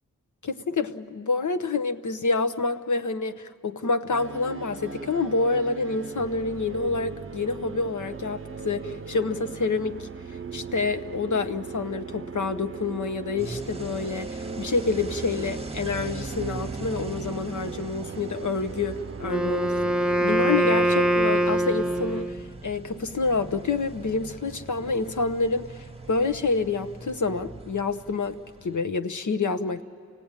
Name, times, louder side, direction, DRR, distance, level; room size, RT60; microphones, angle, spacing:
voice 1, 0.4-10.1 10.5-28.4 28.6-29.8, left 3 dB, 70° left, 9 dB, 0.9 m, -28 dB
sound 1, 4.1-22.3, right 5 dB, 40° right, 0.6 m, -39 dB
sound 2, 13.4-28.8, right 3 dB, 20° right, 1.1 m, -40 dB
Wind instrument woodwind instrument, 19.2-22.5, right 1 dB, 5° right, 0.6 m, -23 dB
29.5 x 17.0 x 8.9 m, 2.2 s
wide cardioid pair, 60°, 31 cm